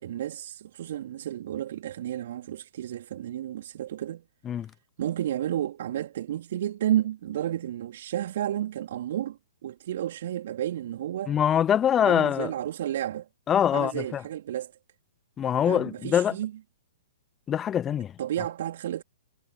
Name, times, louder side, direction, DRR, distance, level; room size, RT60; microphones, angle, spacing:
voice 1, 0.0-4.2 5.0-11.4 12.0-13.3 13.7-14.7 15.7-16.5 18.2-19.0, right 11 dB, 55° right, 2.9 m, -31 dB
voice 2, 11.3-12.5 13.5-14.2 15.4-16.4 17.5-18.2, left 9 dB, 20° left, 1.0 m, -24 dB
figure-of-eight pair, 115°, 0 cm